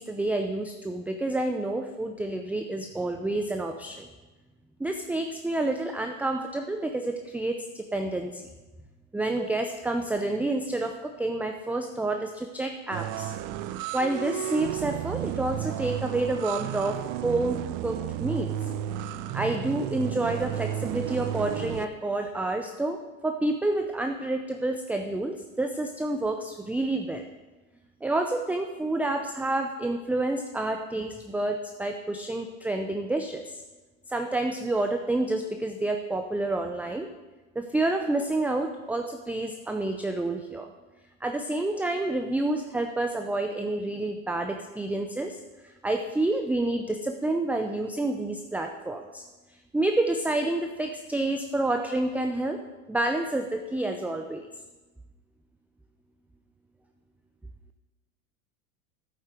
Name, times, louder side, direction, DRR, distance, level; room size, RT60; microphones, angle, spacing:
voice 1, 0.0-4.1 4.8-8.4 9.1-13.3 13.9-18.6 19.3-27.3 28.0-33.6 34.1-37.1 37.6-40.7 41.2-49.2 49.7-52.6 52.9-54.5, right 2 dB, 5° right, 4 dB, 0.6 m, -29 dB
sound 1, 12.9-21.8, right 12 dB, 50° right, 0.7 m, -33 dB
11.5 x 8.8 x 4.5 m, 1.2 s
hypercardioid pair, 95°, 41 cm